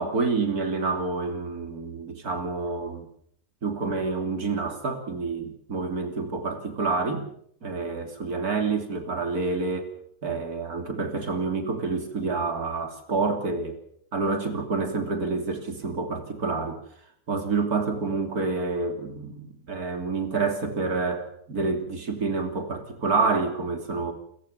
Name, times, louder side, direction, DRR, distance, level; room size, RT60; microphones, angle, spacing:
voice 1, 0.0-3.1 3.6-7.3 7.6-10.0 10.2-13.8 14.1-16.8 17.3-24.1, right 4 dB, 60° right, 6 dB, 3.5 m, -28 dB
27.0 x 15.5 x 7.0 m, 0.68 s
omnidirectional pair, 1.8 m